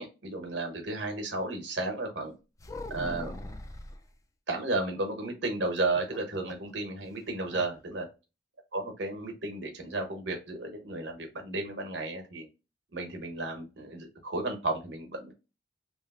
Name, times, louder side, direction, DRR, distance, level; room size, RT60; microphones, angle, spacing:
voice 1, 0.0-2.3 2.9-3.3 4.5-8.1 8.7-12.5 12.9-15.3, right 2 dB, 75° right, 3 dB, 0.9 m, -33 dB
sound 1, 2.6-4.0 5.8-6.7 7.0-7.1 7.5-7.7, left 1 dB, 20° left, 0.3 m, -41 dB
3.1 x 2.4 x 2.3 m, 0.28 s
head